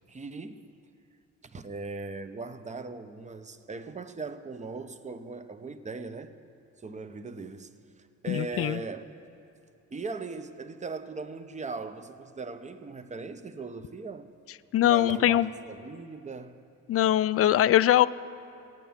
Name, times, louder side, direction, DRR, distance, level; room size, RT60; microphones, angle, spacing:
voice 1, 0.1-0.6 1.4-6.3 6.8-7.7 8.0-9.0 9.9-14.3 14.8-16.6, right 3 dB, 25° right, 0.8 m, -39 dB
voice 2, 8.3-8.8 14.7-15.5 16.9-18.1, left 12 dB, 50° left, 0.4 m, -22 dB
16.0 x 9.2 x 7.2 m
cardioid pair, 90°, 30 cm